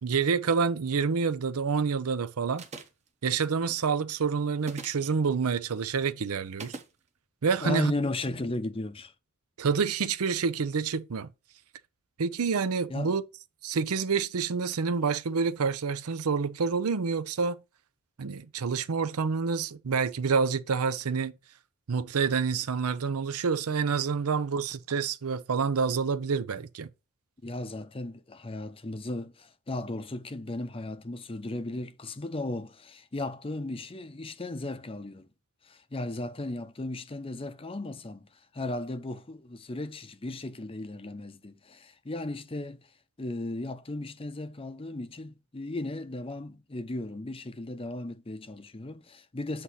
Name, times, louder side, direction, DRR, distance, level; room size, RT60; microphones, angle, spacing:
voice 1, 0.0-2.6 3.2-6.7 7.4-7.9 9.6-11.3 12.2-13.2 13.6-17.6 18.2-21.4 21.9-26.9, right 5 dB, 80° right, 0.6 m, -28 dB
sound 1, 2.6-3.1 4.6-5.1 6.6-6.9, right 3 dB, 30° right, 0.9 m, -41 dB
voice 2, 7.6-9.1 12.9-13.2 27.4-35.3 35.6-42.9 43.2-49.6, left 2 dB, 25° left, 0.6 m, -36 dB
8.2 x 2.7 x 5.5 m
head